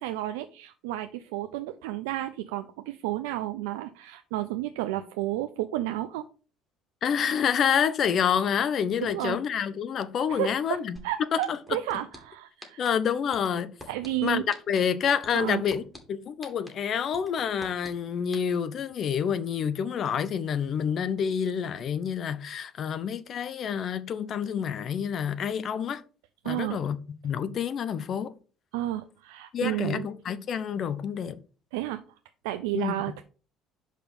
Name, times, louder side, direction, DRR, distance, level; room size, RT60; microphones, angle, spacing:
voice 1, 0.0-6.3 9.0-9.4 10.3-12.8 13.9-14.5 15.3-15.6 26.4-26.8 28.7-30.1 31.7-32.0 32.4-33.2, right 14 dB, 80° right, 0.4 m, -32 dB
voice 2, 7.0-11.0 11.3-11.6 12.8-13.7 14.2-15.8 16.1-26.0 26.4-27.0 27.2-28.3 29.5-31.4 32.7-32.9, left 7 dB, 55° left, 0.7 m, -28 dB
sound 1, 11.0-11.1 11.4-12.2 12.6-12.9 13.3-14.1 14.5-14.8 15.2-16.0 16.4-16.7 17.1-17.9 18.3-18.4, left 1 dB, 10° left, 2.7 m, -43 dB
5.5 x 4.9 x 5.3 m
hypercardioid pair, 65°, 0 cm